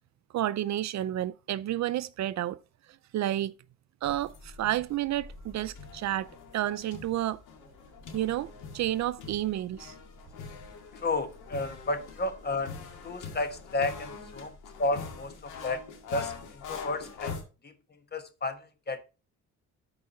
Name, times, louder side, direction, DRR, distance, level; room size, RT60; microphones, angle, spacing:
voice 1, 0.3-2.6 3.1-3.5 4.0-7.4 8.1-9.9, right 13 dB, 65° right, 0.5 m, -30 dB
sound 1, 4.0-17.4, left 5 dB, 90° left, 2.0 m, -44 dB
voice 2, 10.9-12.7 13.0-15.3 15.6-15.8 16.1-17.3 17.6-17.7 18.1-19.0, left 2 dB, 35° left, 1.4 m, -32 dB
12.5 x 4.8 x 3.1 m
cardioid pair, 90°, 30 cm